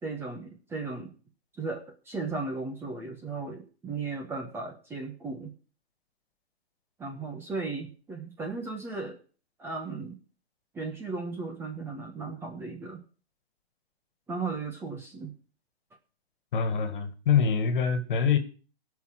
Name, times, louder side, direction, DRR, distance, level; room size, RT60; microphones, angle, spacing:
voice 1, 0.0-1.1 1.5-5.5 7.0-9.2 9.6-10.2 10.7-13.0 14.3-15.3, right 3 dB, 5° right, 2 dB, 1.2 m, -36 dB
voice 2, 16.5-18.4, left 6 dB, 50° left, 10 dB, 2.0 m, -25 dB
17.5 x 5.9 x 6.0 m, 0.37 s
hypercardioid pair, 160°, 31 cm